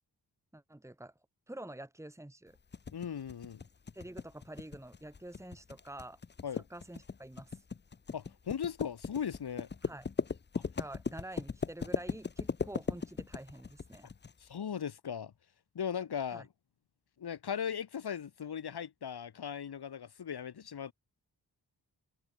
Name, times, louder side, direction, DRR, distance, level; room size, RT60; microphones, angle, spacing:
voice 1, 0.5-1.1 1.5-2.6 3.9-6.2 6.5-7.6 9.8-10.1 10.8-14.1 16.3-16.4, right 1 dB, 5° right, 2.9 m, -47 dB
sound 1, 2.7-14.3, left 5 dB, 30° left, 0.7 m, -38 dB
voice 2, 2.9-3.6 6.4-6.6 8.1-9.7 10.5-10.6 14.4-15.3 15.7-16.5 17.2-20.9, left 8 dB, 80° left, 2.3 m, -38 dB
wide cardioid pair, 170°, 38 cm